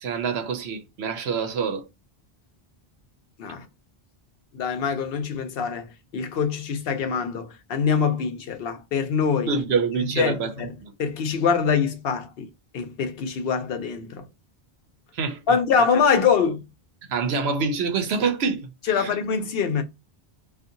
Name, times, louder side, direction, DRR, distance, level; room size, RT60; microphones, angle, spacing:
voice 1, 0.0-1.8 9.5-10.5 15.1-15.6 17.1-18.7 18.9-19.1, right 5 dB, 85° right, 0.9 m, -26 dB
voice 2, 4.5-5.9 6.1-9.5 10.1-10.7 11.0-12.5 12.7-14.3 15.5-16.6 18.9-19.8, left 6 dB, 70° left, 0.8 m, -24 dB
2.6 x 2.4 x 2.5 m
omnidirectional pair, 1.0 m